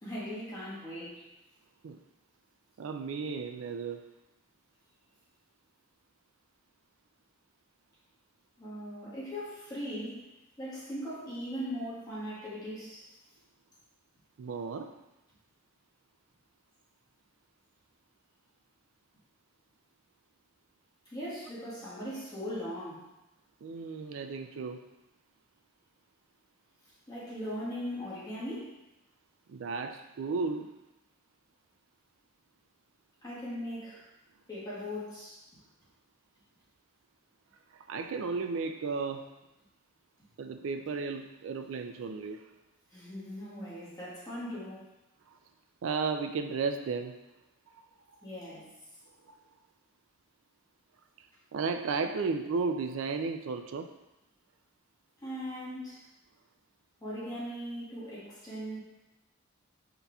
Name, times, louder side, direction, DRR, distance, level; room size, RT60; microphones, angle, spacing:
voice 1, 0.0-1.3 8.6-10.3 10.6-13.1 21.0-23.1 27.1-28.8 33.2-34.1 34.5-35.4 42.9-44.9 48.2-48.7 55.2-56.0 57.0-58.8, equal, 20° left, -9 dB, 1.3 m, -39 dB
voice 2, 2.8-4.0 14.4-14.9 23.6-24.8 29.5-30.8 37.7-39.3 40.4-42.5 45.3-45.4 45.8-47.2 48.2-48.3 49.2-49.4 51.5-53.9, right 4 dB, 70° right, 6 dB, 0.4 m, -34 dB
5.5 x 3.8 x 2.3 m, 0.95 s
head